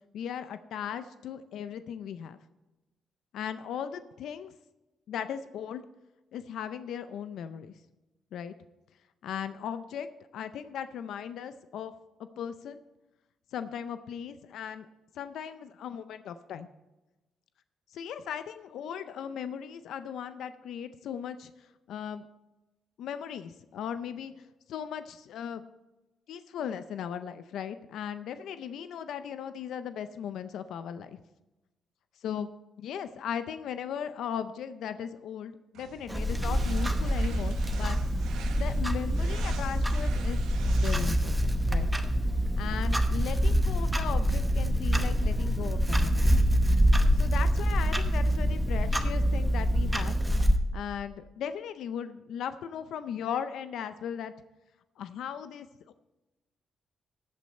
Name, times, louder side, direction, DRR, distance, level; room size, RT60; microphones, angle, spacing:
voice 1, 0.1-2.4 3.3-4.5 5.1-5.8 6.3-7.7 8.3-8.5 9.2-10.1 10.3-11.9 12.4-12.8 13.5-14.9 15.1-16.7 17.9-22.2 23.0-24.3 24.7-25.6 26.3-31.2 32.2-32.5 32.8-38.0 38.5-40.4 40.6-41.9 42.6-46.4 47.1-50.1 50.7-54.3 55.0-55.9, left 8 dB, 75° left, 11 dB, 0.5 m, -37 dB
sound 1, 35.7-41.3, right 6 dB, 85° right, 1.2 m, -45 dB
Clock, 36.1-50.6, equal, 10° right, 0.9 m, -26 dB
14.0 x 8.5 x 4.3 m, 1.1 s
cardioid pair, 120°, 0 cm